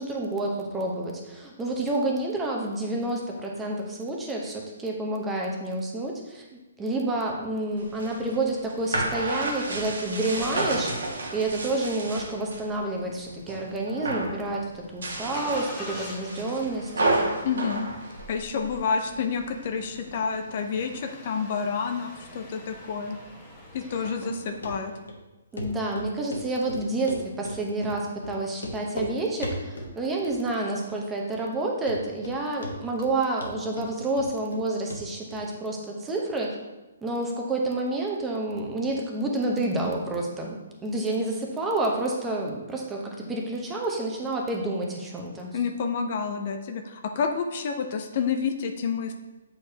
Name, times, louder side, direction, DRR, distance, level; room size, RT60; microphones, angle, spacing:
voice 1, 0.0-17.0 24.0-24.4 25.5-36.5 37.0-45.5, right 2 dB, 10° right, -1 dB, 0.9 m, -29 dB
sound 1, 7.8-12.7 13.1-13.6 13.9-14.4 14.9-18.8, right 2 dB, 80° right, 1.5 m, -30 dB
Engine starting, 14.3-25.0, left 1 dB, 10° left, 1.4 m, -46 dB
voice 2, 17.4-17.9 18.3-23.2 23.7-24.9 45.5-49.1, left 6 dB, 45° left, 6 dB, 0.6 m, -29 dB
Run, 24.6-24.7 25.1-25.2 25.6-25.7 26.0-26.4 26.7-27.6 27.8-28.0 28.2-28.3 28.6-29.1 29.4-29.9 30.3-30.7 31.0-31.1 31.5-31.6 31.9-32.4 32.6-33.1 33.4-34.6 34.9-35.0 35.3-35.4, left 1 dB, 90° left, 1.1 m, -35 dB
7.9 x 4.7 x 2.9 m, 1.1 s
hypercardioid pair, 145°, 0 cm